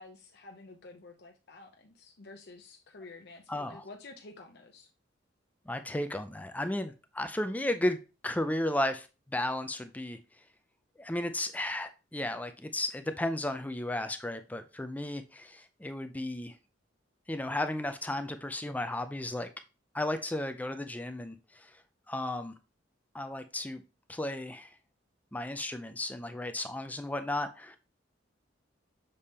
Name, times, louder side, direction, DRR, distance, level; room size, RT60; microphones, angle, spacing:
voice 1, 0.0-4.9, left 3 dB, 60° left, 0.7 m, -50 dB
voice 2, 3.5-3.8 5.7-10.2 11.0-16.5 17.3-19.5 19.9-21.7 22.1-22.5 23.1-23.8 24.1-24.7 25.3-27.8, left 1 dB, 10° left, 0.4 m, -34 dB
6.7 x 3.6 x 4.2 m
head